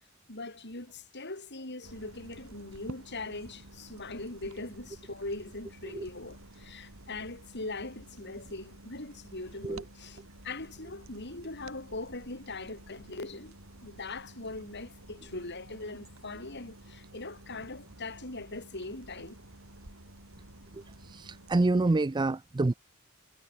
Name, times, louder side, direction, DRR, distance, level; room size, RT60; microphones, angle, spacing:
voice 1, 0.3-13.5 13.8-19.4, left 2 dB, 55° left, 6.6 m, -41 dB
sound 1, 1.8-21.7, right 1 dB, 70° right, 4.5 m, -51 dB
voice 2, 21.1-22.7, right 2 dB, 20° right, 0.4 m, -27 dB
head